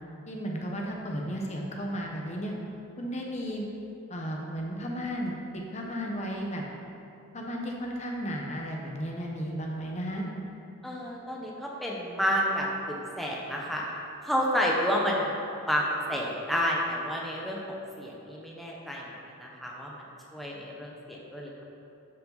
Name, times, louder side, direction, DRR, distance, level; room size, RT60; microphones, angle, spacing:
voice 1, 0.3-2.5 3.0-3.7 4.1-6.6 7.3-10.3, equal, 30° left, 0 dB, 1.0 m, -34 dB
voice 2, 10.8-13.8 14.2-15.4 15.6-20.0 20.3-21.6, equal, ahead, -3 dB, 0.9 m, -30 dB
12.0 x 5.5 x 4.0 m, 2.8 s
head